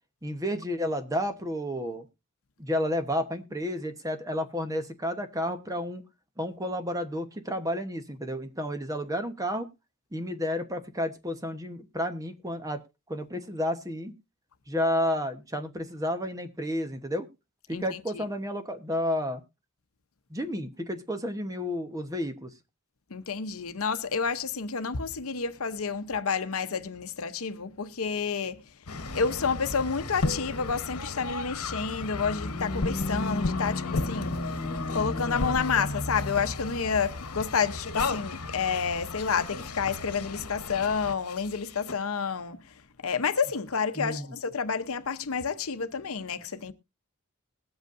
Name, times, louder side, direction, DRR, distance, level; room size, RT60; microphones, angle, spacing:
voice 1, 0.2-2.1 2.6-6.0 6.4-9.7 10.1-12.8 13.1-14.1 14.7-17.3 17.7-19.4 20.3-22.5 44.0-44.3, left 1 dB, 15° right, 1.0 m, -31 dB
voice 2, 17.7-18.2 23.1-28.6 29.1-34.4 34.9-46.7, left 5 dB, 70° left, 0.8 m, -30 dB
sound 1, 28.9-41.9, left 3 dB, 85° left, 1.1 m, -34 dB
sound 2, 31.8-36.6, left 2 dB, 35° left, 0.7 m, -34 dB
20.5 x 8.0 x 2.6 m
head